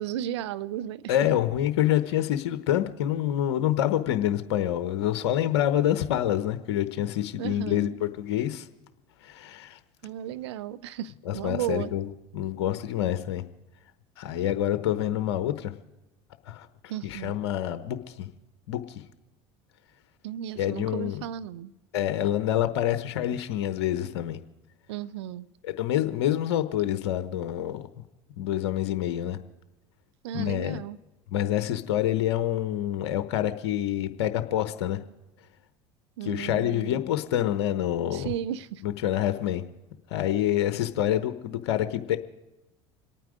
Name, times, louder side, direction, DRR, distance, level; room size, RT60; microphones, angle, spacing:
voice 1, 0.0-1.2 7.4-8.0 10.0-11.9 16.9-17.4 20.2-21.7 24.9-25.5 30.2-31.0 36.2-37.0 38.1-38.8, right 11 dB, 85° right, 0.6 m, -34 dB
voice 2, 1.1-8.7 9.2-9.8 11.3-12.1 12.3-13.4 14.2-15.7 16.5-16.7 17.0-18.3 18.7-18.8 20.6-21.2 21.9-24.4 25.6-27.8 28.4-29.4 30.3-30.8 31.3-35.0 36.2-38.3 38.8-39.6 40.1-42.2, left 12 dB, 80° left, 1.0 m, -27 dB
26.0 x 9.2 x 5.0 m
hypercardioid pair, 80°, 14 cm